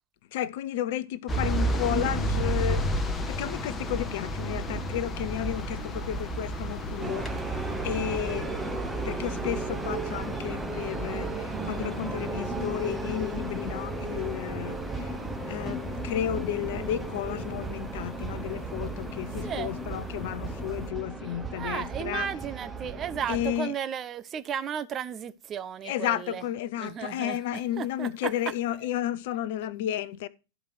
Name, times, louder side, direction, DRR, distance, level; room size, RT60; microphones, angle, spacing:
voice 1, 0.3-2.9 3.3-7.5 7.8-8.8 9.0-15.2 15.5-22.3 23.3-23.7 25.8-30.3, left 12 dB, 50° left, 0.6 m, -32 dB
sound 1, 1.3-20.9, right 1 dB, 15° left, 1.1 m, -34 dB
sound 2, 4.9-10.5, equal, 75° left, 1.1 m, -46 dB
sound 3, 7.0-23.6, right 2 dB, 10° right, 1.0 m, -35 dB
voice 2, 21.6-26.4 26.8-27.4 27.8-28.1, right 8 dB, 25° right, 0.6 m, -34 dB
13.0 x 5.1 x 4.5 m
figure-of-eight pair, 90°, 0 cm